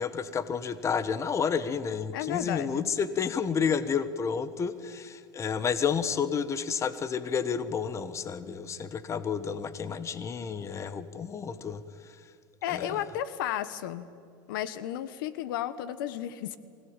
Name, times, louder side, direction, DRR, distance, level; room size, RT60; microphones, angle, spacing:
voice 1, 0.0-11.8 12.7-13.0, left 6 dB, 25° left, 14 dB, 1.3 m, -30 dB
voice 2, 2.1-2.9 12.6-14.1 14.5-16.6, left 11 dB, 75° left, 15 dB, 1.2 m, -33 dB
24.0 x 17.5 x 9.0 m, 2.3 s
supercardioid pair, 110°, 11 cm